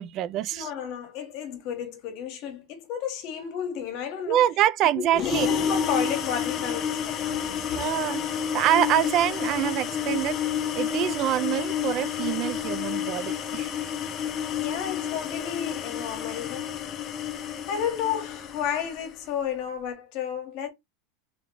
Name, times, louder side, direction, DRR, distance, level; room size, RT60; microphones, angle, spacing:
voice 1, 0.0-0.7 4.3-5.5 7.7-8.2 8.5-10.4 10.7-13.7, right 12 dB, 35° right, 0.3 m, -25 dB
voice 2, 0.5-4.4 4.9-8.0 14.6-16.8 17.7-20.7, left 8 dB, 45° left, 1.2 m, -32 dB
sound 1, 5.1-19.1, left 8 dB, 25° left, 0.6 m, -30 dB
3.5 x 3.0 x 3.8 m
supercardioid pair, 165°, 0 cm